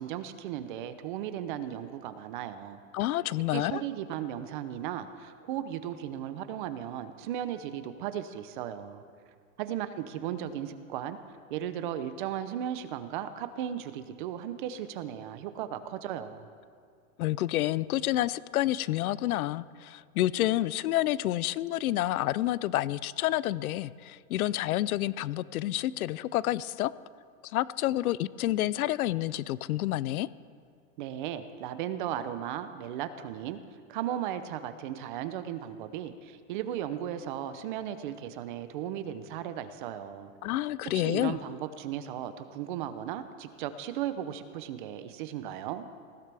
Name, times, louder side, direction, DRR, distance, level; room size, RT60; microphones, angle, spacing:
voice 1, 0.0-2.8 3.5-9.0 9.6-11.2 11.5-16.5 31.0-33.6 33.9-40.3 40.9-45.8, right 10 dB, 35° right, 11 dB, 0.6 m, -36 dB
voice 2, 2.9-3.8 17.2-26.9 27.5-30.3 40.4-41.4, left 15 dB, 85° left, 19 dB, 0.6 m, -29 dB
19.0 x 15.5 x 3.4 m, 2.2 s
supercardioid pair, 165°, 42 cm